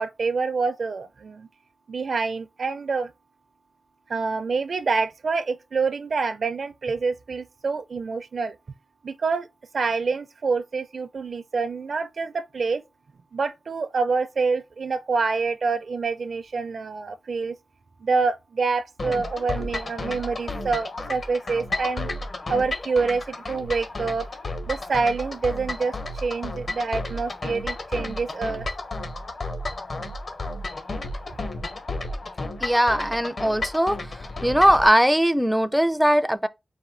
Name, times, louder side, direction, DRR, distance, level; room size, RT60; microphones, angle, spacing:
voice 1, 0.0-1.5 1.9-3.1 4.1-8.6 9.0-9.5 9.7-12.8 13.3-17.6 18.0-22.1 22.5-24.3 24.7-28.7, right 4 dB, 75° right, 0.5 m, -26 dB
sound 1, 19.0-34.9, left 2 dB, 60° left, 1.1 m, -32 dB
voice 2, 32.6-34.0 34.4-36.5, equal, 5° right, 0.4 m, -20 dB
4.3 x 2.6 x 3.7 m
wide cardioid pair, 90°, 0 cm